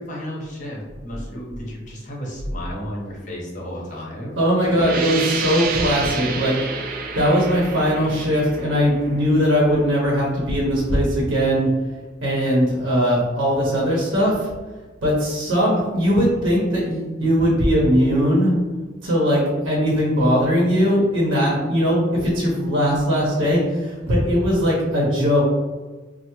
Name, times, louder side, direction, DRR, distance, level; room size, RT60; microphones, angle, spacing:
voice 1, 0.0-4.4, equal, 40° left, -3 dB, 0.7 m, -33 dB
voice 2, 4.4-6.6 7.1-11.7 12.2-14.5 15.0-18.6 19.0-25.4, equal, 80° right, -5 dB, 0.8 m, -19 dB
sound 1, 4.7-10.2, right 4 dB, 50° right, 0.3 m, -29 dB
3.3 x 2.0 x 3.0 m, 1.3 s
head